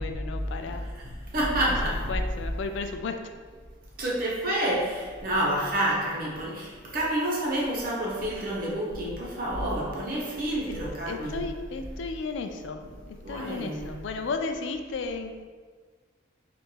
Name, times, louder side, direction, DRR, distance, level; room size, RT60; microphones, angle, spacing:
voice 1, 0.0-0.8 1.6-3.2 10.7-10.8 11.1-15.5, left 4 dB, 65° left, 7 dB, 0.3 m, -34 dB
voice 2, 0.6-2.1 4.0-11.4 13.2-14.0, right 1 dB, 45° right, -5 dB, 1.0 m, -29 dB
4.4 x 2.5 x 4.6 m, 1.6 s
head